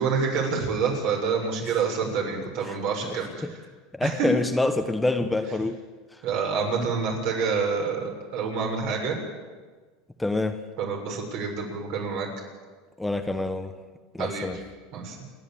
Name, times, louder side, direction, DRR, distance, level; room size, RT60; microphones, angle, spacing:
voice 1, 0.0-3.5 4.0-4.3 6.2-9.2 10.8-12.3 14.2-14.6 14.9-15.2, right 5 dB, 60° right, 1 dB, 6.9 m, -27 dB
voice 2, 4.0-5.8 10.2-10.6 13.0-13.7 14.1-14.6, left 2 dB, 5° left, 7 dB, 1.3 m, -26 dB
28.0 x 11.0 x 9.0 m, 1.4 s
supercardioid pair, 115°, 0 cm